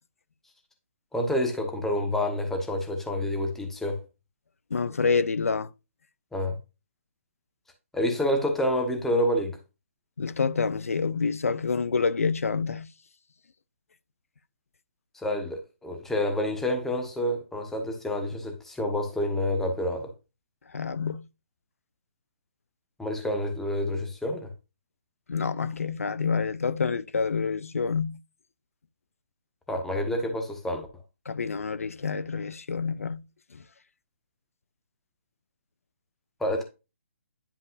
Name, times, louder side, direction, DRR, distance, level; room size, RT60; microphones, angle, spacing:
voice 1, 1.1-4.0 6.3-6.6 7.9-9.6 15.1-20.1 23.0-24.5 29.7-30.9 36.4-36.6, left 1 dB, 5° left, 1.3 m, -28 dB
voice 2, 4.7-5.7 10.2-12.9 20.7-21.2 25.3-28.2 31.3-33.2, left 5 dB, 85° left, 0.5 m, -27 dB
10.0 x 5.4 x 2.5 m
hypercardioid pair, 150°, 7 cm